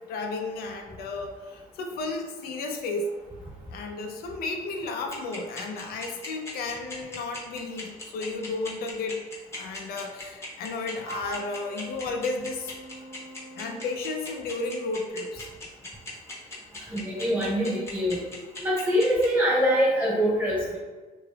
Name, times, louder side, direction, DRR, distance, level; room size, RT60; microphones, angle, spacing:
voice 1, 0.1-3.1 3.7-9.2 9.6-12.7 13.6-15.5, left 3 dB, 65° left, 4 dB, 0.4 m, -33 dB
sound 1, 5.1-19.3, left 2 dB, 15° left, 0.8 m, -38 dB
Wind instrument woodwind instrument, 11.0-13.9, right 2 dB, 80° right, 1.1 m, -43 dB
voice 2, 16.9-18.2 18.6-20.8, equal, 10° right, -8 dB, 1.3 m, -24 dB
3.2 x 2.9 x 2.3 m, 1.3 s
cardioid pair, 110°, 17 cm